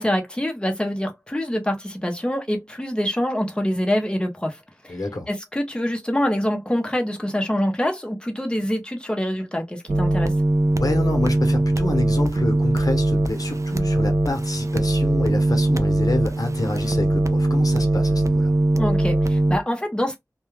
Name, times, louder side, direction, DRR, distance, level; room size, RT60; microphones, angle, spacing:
voice 1, 0.0-4.6 4.8-5.0 5.3-10.3 18.8-20.2, equal, 15° left, 0.7 m, -25 dB
voice 2, 4.9-5.3 10.8-18.5, left 2 dB, 85° left, 0.8 m, -28 dB
sound 1, 9.9-19.6, right 2 dB, 55° right, 0.3 m, -21 dB
2.3 x 2.2 x 3.0 m
wide cardioid pair, 40°, 6 cm